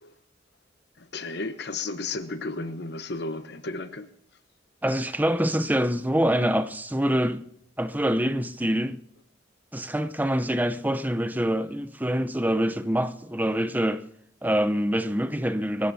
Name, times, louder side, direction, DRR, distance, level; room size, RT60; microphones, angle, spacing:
voice 1, 1.0-4.1 13.4-13.5, left 3 dB, 60° left, 1.1 m, -34 dB
voice 2, 4.8-7.4 7.8-9.0 9.7-14.0 14.4-15.9, equal, 10° right, 0.7 m, -25 dB
26.0 x 14.0 x 2.8 m
head